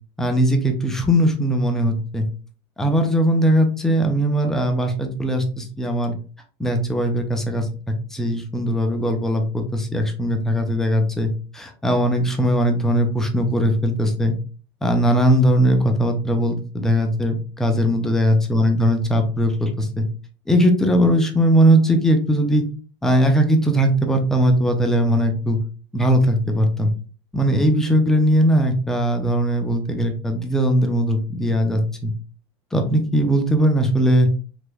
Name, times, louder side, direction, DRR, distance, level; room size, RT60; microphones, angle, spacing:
voice 1, 0.2-2.2 2.8-6.1 6.6-7.7 8.1-14.3 14.8-20.0 20.5-22.6 23.0-25.6 25.9-26.9 27.3-32.1 32.7-34.3, equal, 5° left, 4 dB, 0.4 m, -19 dB
3.3 x 2.9 x 2.2 m, 0.37 s
supercardioid pair, 160°, 13 cm